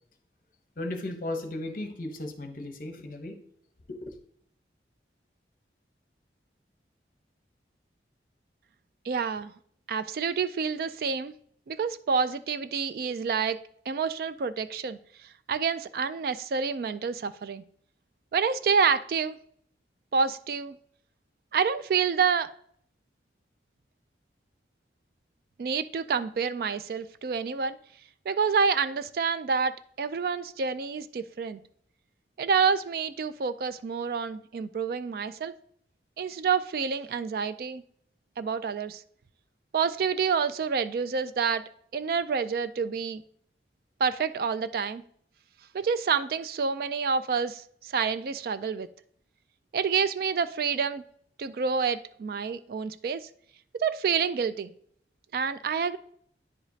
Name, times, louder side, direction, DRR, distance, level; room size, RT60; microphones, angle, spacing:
voice 1, 0.8-3.4 3.9-4.1, left 1 dB, 50° left, 6 dB, 0.8 m, -35 dB
voice 2, 9.1-9.5 9.9-11.3 11.7-13.6 13.9-15.0 15.5-17.6 18.3-19.4 20.1-20.8 21.5-22.5 25.6-27.8 28.3-29.7 30.0-31.6 32.4-35.6 36.2-37.8 38.4-39.0 39.7-41.6 41.9-43.2 44.0-45.0 45.7-48.9 49.7-51.0 51.4-53.3 53.7-54.7 55.3-56.0, right 6 dB, 55° right, 14 dB, 0.3 m, -28 dB
9.6 x 5.0 x 2.7 m, 0.63 s
head